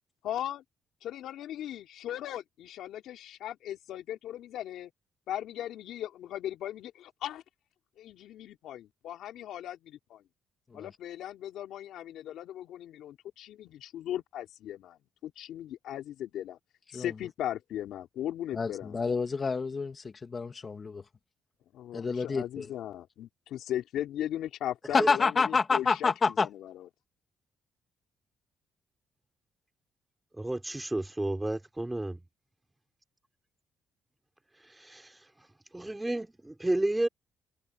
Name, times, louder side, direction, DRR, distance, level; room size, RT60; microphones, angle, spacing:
voice 1, 0.2-0.6 1.0-4.9 5.3-7.4 8.0-10.2 10.7-16.6 16.9-19.0 21.7-26.9, left 12 dB, 80° left, 3.5 m, -38 dB
voice 2, 18.5-21.0 21.9-22.8 24.9-26.5, left 4 dB, 35° left, 2.7 m, -28 dB
voice 3, 30.4-32.2 35.7-37.1, right 1 dB, 10° right, 4.1 m, -31 dB
cardioid pair, 90°, 0 cm